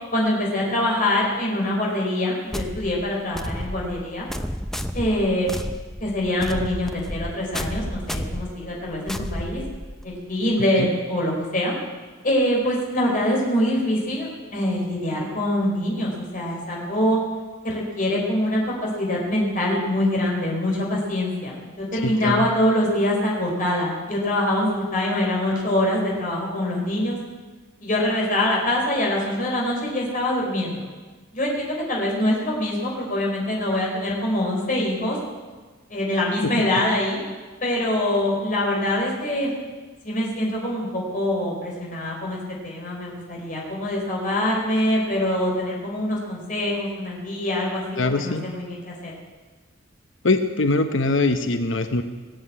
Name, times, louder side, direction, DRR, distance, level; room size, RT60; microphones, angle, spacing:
voice 1, 0.1-4.3 4.9-5.5 6.0-9.6 10.0-11.7 12.2-17.2 17.6-27.2 27.8-30.8 31.3-35.2 35.9-37.2 37.6-39.5 40.0-49.1, left 1 dB, 40° left, -3 dB, 4.3 m, -24 dB
sound 1, 2.5-10.2, equal, ahead, 0.6 m, -32 dB
voice 2, 22.0-22.5 48.0-48.5 50.2-52.0, left 2 dB, 70° left, 8 dB, 0.9 m, -22 dB
19.5 x 7.9 x 8.6 m, 1.4 s
head